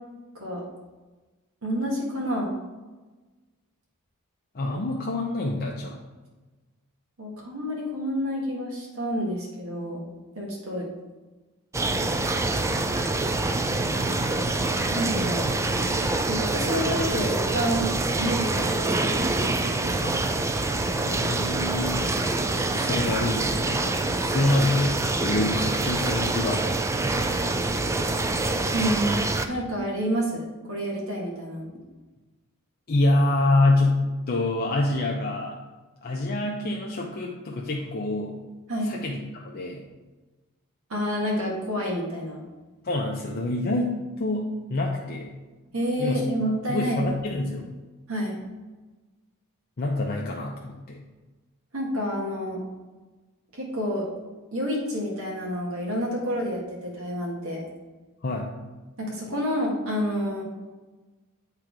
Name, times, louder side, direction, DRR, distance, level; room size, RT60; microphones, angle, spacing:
voice 1, 1.6-2.5 7.2-10.0 10.4-10.9 14.9-15.5 16.3-17.9 18.1-19.4 19.8-20.2 28.7-31.7 38.7-39.0 40.9-42.4 45.7-47.0 48.1-48.4 51.7-52.6 53.5-54.1 54.5-57.6 59.0-60.4, equal, 75° right, -3 dB, 1.7 m, -29 dB
voice 2, 4.5-6.0 20.0-20.2 21.1-22.4 22.7-26.6 32.9-35.6 36.0-38.4 38.8-39.8 42.8-45.3 46.0-46.2 46.7-47.7 49.8-51.0 58.2-58.5, left 2 dB, 45° left, -1 dB, 0.6 m, -26 dB
sound 1, 11.7-29.5, right 2 dB, 15° right, 0.3 m, -26 dB
8.4 x 3.8 x 4.6 m, 1.2 s
head